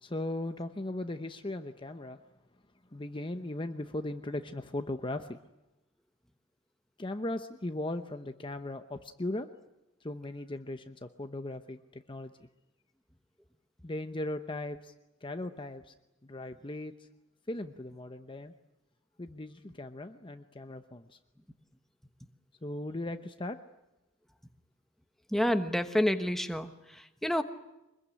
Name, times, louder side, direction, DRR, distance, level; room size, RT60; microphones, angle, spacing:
voice 1, 0.0-2.2 2.9-5.4 7.0-9.5 10.0-12.3 13.8-14.9 15.2-15.9 16.2-17.1 17.5-18.5 19.2-21.2 22.6-23.6, left 1 dB, 25° left, 7 dB, 0.9 m, -38 dB
voice 2, 25.3-27.4, left 1 dB, ahead, 7 dB, 1.2 m, -29 dB
24.5 x 21.5 x 9.9 m, 0.96 s
head